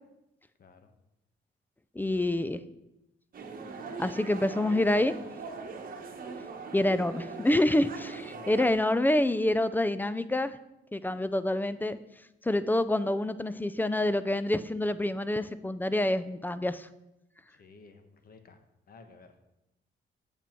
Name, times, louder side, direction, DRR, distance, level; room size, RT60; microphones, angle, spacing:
voice 1, 0.6-0.9 8.3-8.7 17.5-18.6 18.9-19.4, left 4 dB, 50° left, 7 dB, 1.2 m, -54 dB
voice 2, 2.0-2.6 4.0-5.2 6.7-10.6 10.9-12.0 12.4-16.9, left 1 dB, 10° left, 14 dB, 0.4 m, -27 dB
sound 1, 3.3-8.7, right 4 dB, 45° right, 1.2 m, -41 dB
8.4 x 6.9 x 4.5 m, 0.90 s
cardioid pair, 90°, 20 cm